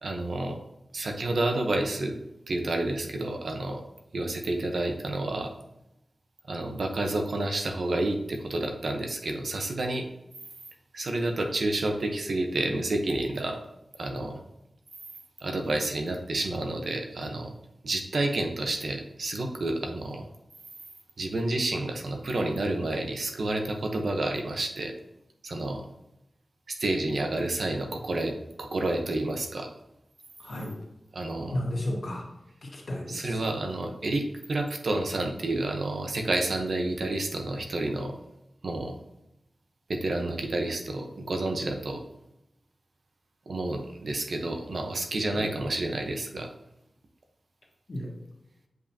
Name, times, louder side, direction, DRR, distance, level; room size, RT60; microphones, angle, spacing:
voice 1, 0.0-0.6 0.9-2.2 2.5-3.8 4.1-5.5 6.5-10.1 10.9-13.6 14.0-14.4 15.4-17.5 17.8-20.3 21.2-24.9 25.4-25.8 26.7-29.7 31.1-31.6 33.1-38.1 38.6-39.0 39.9-42.0 43.5-46.5, right 2 dB, 70° right, 3 dB, 0.9 m, -29 dB
voice 2, 30.4-30.8 31.5-32.2 32.6-33.3 45.3-45.5 47.9-48.1, left 1 dB, 60° left, -2 dB, 1.8 m, -33 dB
7.7 x 5.3 x 2.8 m, 0.87 s
wide cardioid pair, 110°, 0 cm